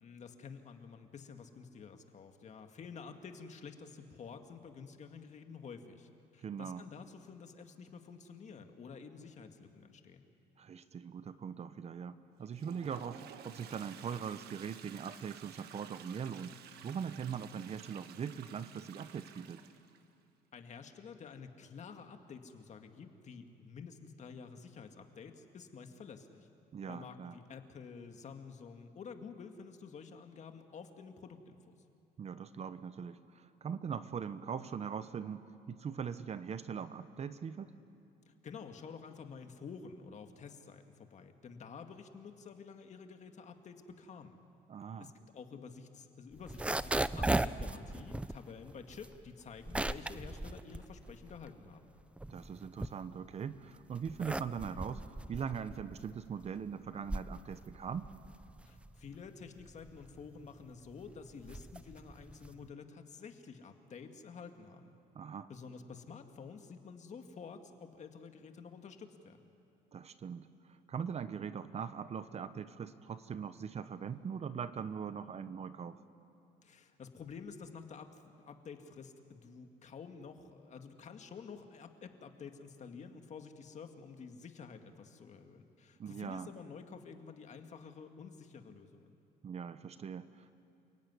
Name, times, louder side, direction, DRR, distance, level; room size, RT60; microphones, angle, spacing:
voice 1, 0.0-10.3 20.5-26.5 26.9-31.8 38.3-44.4 45.0-51.9 58.7-64.9 65.5-69.5 76.6-89.1, left 5 dB, 45° left, 6 dB, 2.0 m, -50 dB
voice 2, 6.4-6.8 10.6-16.6 16.8-19.6 26.7-27.4 32.2-37.7 44.7-45.1 52.3-58.1 65.1-65.5 69.9-76.0 86.0-86.5 89.4-90.5, right 7 dB, 40° right, 12 dB, 0.9 m, -41 dB
Toilet flush, 12.4-20.0, right 9 dB, 70° right, 1.4 m, -53 dB
sound 1, 46.3-51.6 52.0-53.4 53.9-62.7, right 2 dB, 5° right, 0.6 m, -38 dB
29.0 x 16.5 x 9.7 m, 2.6 s
cardioid pair, 110°, 17 cm